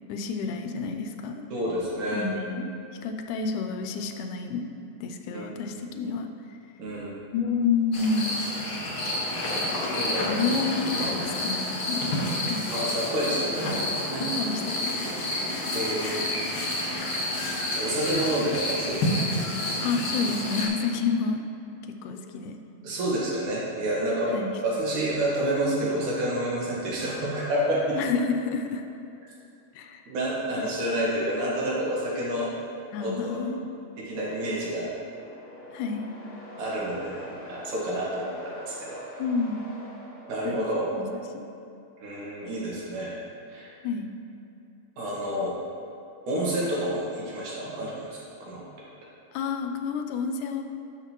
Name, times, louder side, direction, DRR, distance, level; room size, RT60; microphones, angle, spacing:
voice 1, 0.1-1.4 2.1-2.7 3.0-4.7 5.0-6.3 7.3-8.5 10.2-12.2 12.5-12.7 14.2-15.1 19.8-21.5 21.9-22.6 24.3-24.5 27.9-28.8 29.8-30.1 32.9-33.6 35.7-36.1 39.2-39.7 40.4-40.7 41.0-41.1 41.3-41.5 43.8-44.1 49.3-50.6, left 5 dB, 85° left, 6 dB, 2.1 m, -29 dB
voice 2, 1.5-2.3 5.3-6.0 6.8-7.2 9.9-10.3 12.7-14.3 15.7-16.6 17.7-19.0 22.8-24.3 24.6-28.0 30.1-32.5 33.0-33.4 34.0-34.9 36.6-39.0 40.3-40.9 42.0-43.2 43.5-43.7 45.0-45.5 46.3-48.6, right 1 dB, 75° right, -6 dB, 3.2 m, -29 dB
sound 1, 7.9-20.7, left 1 dB, 50° left, 1.8 m, -29 dB
sound 2, 34.0-41.0, equal, 30° left, 1.6 m, -45 dB
11.5 x 6.5 x 3.0 m, 2.7 s
omnidirectional pair, 3.5 m